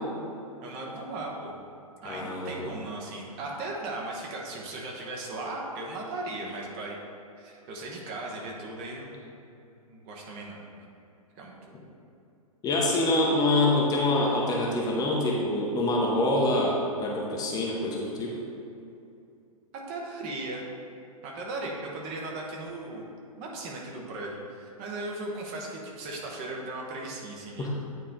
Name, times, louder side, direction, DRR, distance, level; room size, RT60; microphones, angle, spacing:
voice 1, 0.6-1.5 2.0-7.0 7.4-9.3 9.9-10.6 11.4-11.8 19.9-20.7 21.2-23.1 23.4-27.7, right 2 dB, 35° right, -2 dB, 1.0 m, -37 dB
voice 2, 2.0-2.7 12.6-18.3 27.6-27.7, left 2 dB, 20° left, -3 dB, 0.9 m, -25 dB
9.1 x 3.3 x 3.9 m, 2.7 s
figure-of-eight pair, 110°, 19 cm